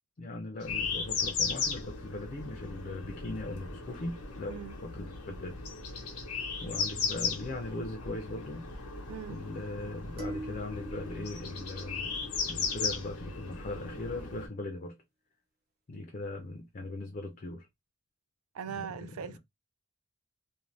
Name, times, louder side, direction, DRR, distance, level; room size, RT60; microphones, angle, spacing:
voice 1, 0.2-5.6 6.0-6.2 6.6-8.6 9.3-12.1 12.5-15.0 15.9-17.7 18.6-19.4, left 2 dB, 35° left, 0.4 m, -39 dB
sound 1, 0.6-14.5, left 5 dB, 85° left, 0.8 m, -36 dB
sound 2, 10.2-12.6, right 2 dB, 40° right, 0.8 m, -43 dB
voice 2, 18.5-19.4, right 7 dB, 75° right, 0.4 m, -40 dB
2.6 x 2.1 x 3.1 m
head